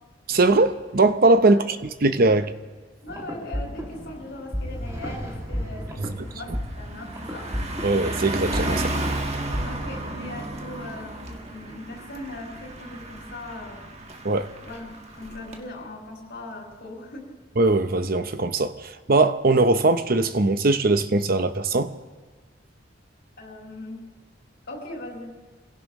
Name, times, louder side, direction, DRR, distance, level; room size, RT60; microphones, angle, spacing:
voice 1, 0.3-2.5 6.0-6.1 7.8-8.9 14.2-14.5 17.6-21.9, right 2 dB, 50° right, 0.8 m, -20 dB
voice 2, 3.0-7.5 9.6-13.9 14.6-17.4 23.4-24.1 24.7-25.3, left 2 dB, 65° left, 5.2 m, -39 dB
sound 1, 3.1-9.6, equal, 15° right, 2.4 m, -33 dB
Car passing by, 4.0-4.2 4.6-15.6, right 1 dB, 35° right, 1.6 m, -33 dB
28.0 x 16.5 x 3.1 m
head